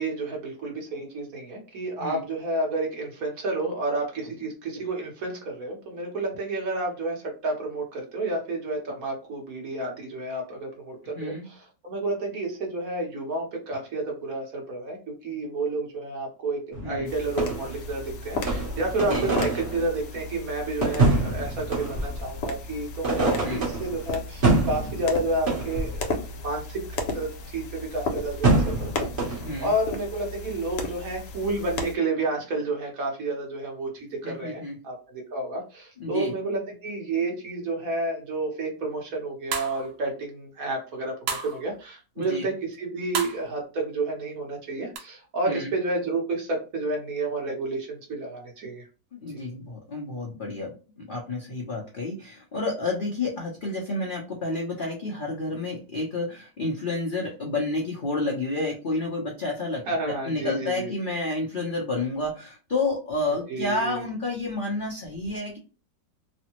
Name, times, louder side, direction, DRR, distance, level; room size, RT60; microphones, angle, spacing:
voice 1, 0.0-15.0 15.2-33.9 34.2-48.9 59.9-60.9 63.5-64.0, right 2 dB, 60° right, 0 dB, 1.3 m, -30 dB
voice 2, 11.2-11.5 16.8-17.1 19.0-19.4 23.4-23.7 29.4-29.7 34.2-34.8 36.0-36.3 42.2-42.5 45.4-45.7 49.1-65.6, left 2 dB, 55° left, -3 dB, 0.5 m, -30 dB
sound 1, 16.7-17.9 18.5-19.9 20.8-22.4 23.0-24.0 24.4-26.2 28.4-29.6, right 2 dB, 35° right, 1.1 m, -25 dB
sound 2, 17.0-32.0, left 2 dB, 80° left, 1.3 m, -35 dB
sound 3, 39.5-39.9 41.3-41.6 43.1-43.5 44.9-45.0, right 5 dB, 75° right, 1.3 m, -30 dB
3.3 x 2.1 x 2.9 m, 0.33 s
omnidirectional pair, 1.9 m